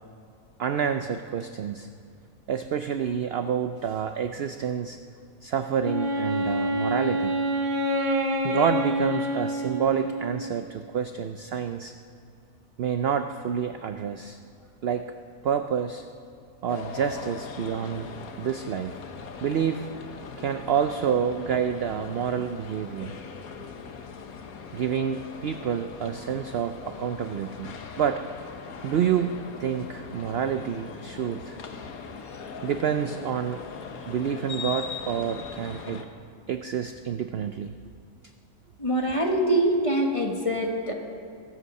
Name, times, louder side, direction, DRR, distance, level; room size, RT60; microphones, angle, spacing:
voice 1, 0.6-1.9 2.5-5.0 5.4-7.3 8.4-11.9 12.8-14.4 14.8-15.1 15.4-16.0 16.6-18.1 18.4-18.9 19.4-19.9 20.4-23.2 24.7-28.2 28.8-29.3 29.6-31.6 32.6-33.6 34.1-36.0 36.5-37.7, right 8 dB, 65° right, 8 dB, 0.6 m, -28 dB
Wind instrument woodwind instrument, 5.8-10.6, equal, 35° right, 1.1 m, -27 dB
sound 1, 16.7-36.0, left 5 dB, 75° left, 1.5 m, -40 dB
voice 2, 38.8-40.9, right 1 dB, 25° left, 1 dB, 1.4 m, -24 dB
22.5 x 8.2 x 6.4 m, 2.3 s
omnidirectional pair, 1.5 m